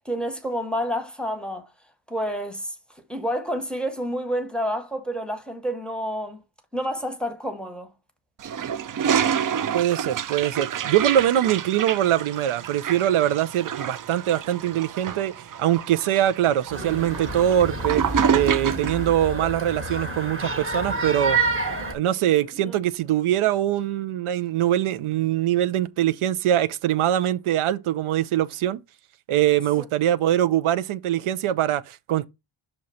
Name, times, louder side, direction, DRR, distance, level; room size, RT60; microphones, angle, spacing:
voice 1, 0.0-1.7 2.1-2.7 3.1-6.4 6.7-7.9 22.6-22.8 29.8-29.9, equal, ahead, 0.9 m, -29 dB
Toilet flush, 8.4-19.1, right 8 dB, 45° right, 0.4 m, -28 dB
voice 2, 9.7-15.3 15.6-18.0 18.3-21.4 21.9-28.8 29.3-32.3, right 11 dB, 90° right, 0.6 m, -23 dB
sound 1, 16.7-21.9, right 3 dB, 25° right, 1.1 m, -28 dB
6.4 x 3.0 x 5.5 m
wide cardioid pair, 145°, 48 cm